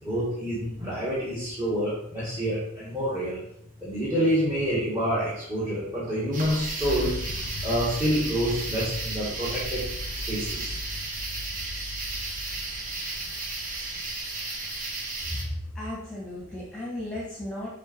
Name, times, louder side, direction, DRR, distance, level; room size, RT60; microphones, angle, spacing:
voice 1, 0.0-3.4 3.8-7.3 7.6-9.8 10.3-10.8 13.0-13.2, equal, 15° right, -8 dB, 1.8 m, -27 dB
sound 1, 6.3-15.4, right 3 dB, 40° right, 1.2 m, -34 dB
sound 2, 6.8-14.2, left 2 dB, 50° left, 0.5 m, -38 dB
voice 2, 15.3-17.7, left 1 dB, 5° left, -6 dB, 1.4 m, -34 dB
7.1 x 3.6 x 4.5 m, 0.76 s
head